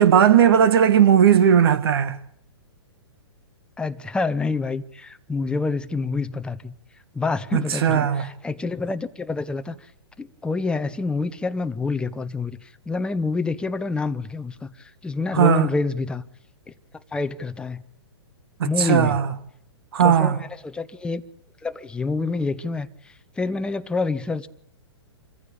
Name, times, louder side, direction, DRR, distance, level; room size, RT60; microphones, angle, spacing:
voice 1, 0.0-2.2 7.5-8.3 15.3-15.7 18.6-19.3 19.9-20.4, right 8 dB, 60° right, 1.9 m, -17 dB
voice 2, 3.8-6.7 7.1-9.8 10.2-16.2 17.1-17.8 18.6-19.2 20.0-21.2 21.6-24.5, left 3 dB, 5° left, 0.9 m, -27 dB
25.5 x 15.0 x 8.6 m
hypercardioid pair, 120°, 14 cm